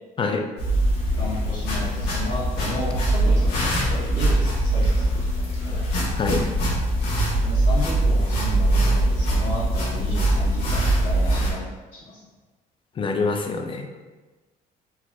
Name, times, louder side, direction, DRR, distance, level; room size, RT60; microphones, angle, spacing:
sound 1, 0.6-11.5, right 1 dB, 80° left, 1.4 m, -22 dB
voice 1, 1.2-5.1 5.6-5.8 7.4-11.6 11.9-12.2, left 1 dB, 50° left, -9 dB, 1.2 m, -33 dB
voice 2, 6.2-6.5 13.0-13.9, left 3 dB, 30° left, 4 dB, 0.5 m, -25 dB
4.8 x 3.9 x 2.3 m, 1.3 s
cardioid pair, 110°, 17 cm